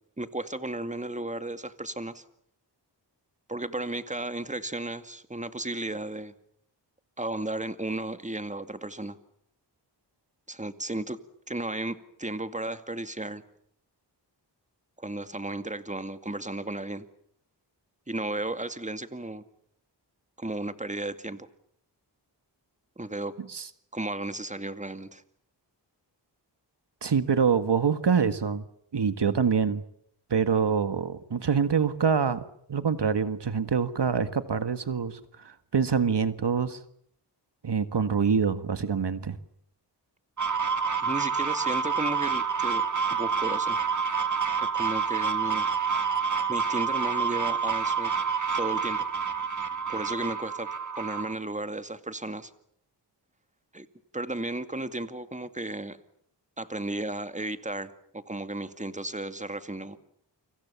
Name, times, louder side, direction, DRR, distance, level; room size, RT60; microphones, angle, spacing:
voice 1, 0.2-2.2 3.5-6.3 7.2-9.2 10.5-11.2 11.5-13.4 15.0-17.0 18.1-19.4 20.4-21.5 23.0-23.4 23.9-25.2 41.0-43.8 44.6-45.7 46.5-48.1 48.5-49.1 49.9-50.7 51.0-52.5 53.7-53.9 54.1-56.0 56.6-60.0, right 2 dB, 15° right, 2.3 m, -34 dB
voice 2, 27.0-28.6 28.9-29.8 30.3-32.4 32.7-36.8 37.6-39.4, right 6 dB, 70° right, 1.8 m, -25 dB
sound 1, 40.4-51.3, right 6 dB, 45° right, 2.3 m, -28 dB
30.0 x 25.5 x 7.1 m
wide cardioid pair, 65°, 43 cm